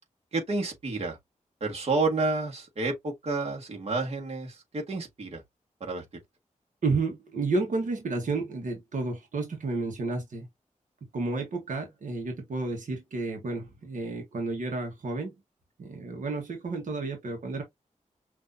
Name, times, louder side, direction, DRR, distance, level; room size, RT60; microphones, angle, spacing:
voice 1, 0.3-1.2 1.6-5.4 5.8-6.0, right 3 dB, 50° right, 1.6 m, -30 dB
voice 2, 6.8-10.5 11.1-15.3 15.8-17.6, right 3 dB, 75° right, 1.3 m, -31 dB
6.1 x 2.8 x 2.6 m
wide cardioid pair, 155°, 13 cm